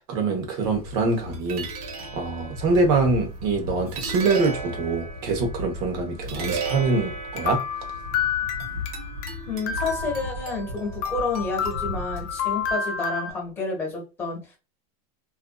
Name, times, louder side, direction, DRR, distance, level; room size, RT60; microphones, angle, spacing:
voice 1, 0.0-1.7 2.1-7.6, right 3 dB, 45° right, 0.9 m, -24 dB
sound 1, 0.6-12.7, right 1 dB, 75° right, 0.9 m, -35 dB
sound 2, 7.4-9.3 9.7-10.7 11.0-13.3, left 7 dB, 50° left, 0.5 m, -29 dB
voice 2, 9.5-14.6, left 3 dB, 10° left, 1.2 m, -30 dB
2.5 x 2.4 x 2.2 m
supercardioid pair, 150°, 19 cm